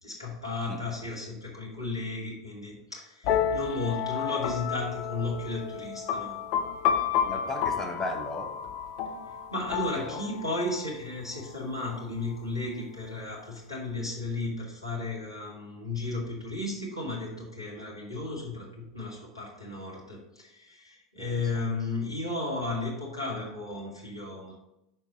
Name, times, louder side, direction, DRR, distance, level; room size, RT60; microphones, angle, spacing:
voice 1, 0.0-6.4 9.3-18.7 18.9-24.6, left 2 dB, 90° left, -5 dB, 2.2 m, -34 dB
sound 1, 3.2-10.8, left 8 dB, 45° left, 0.6 m, -31 dB
voice 2, 7.2-8.6 9.9-10.2 21.2-21.4, left 2 dB, 15° left, 1 dB, 1.2 m, -35 dB
6.4 x 4.4 x 4.2 m, 0.87 s
figure-of-eight pair, 85°, 3 cm